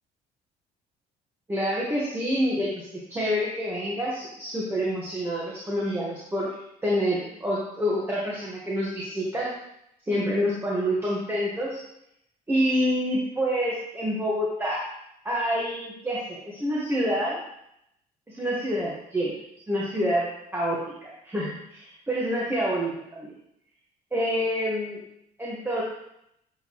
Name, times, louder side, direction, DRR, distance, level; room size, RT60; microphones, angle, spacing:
voice 1, 1.5-6.5 6.8-9.5 10.1-11.8 12.5-14.8 15.2-17.4 18.3-19.3 19.7-23.3 24.1-25.0 25.4-25.8, equal, 15° right, -6 dB, 1.4 m, -27 dB
9.0 x 4.5 x 3.1 m, 0.79 s
cardioid pair, 110°, 17 cm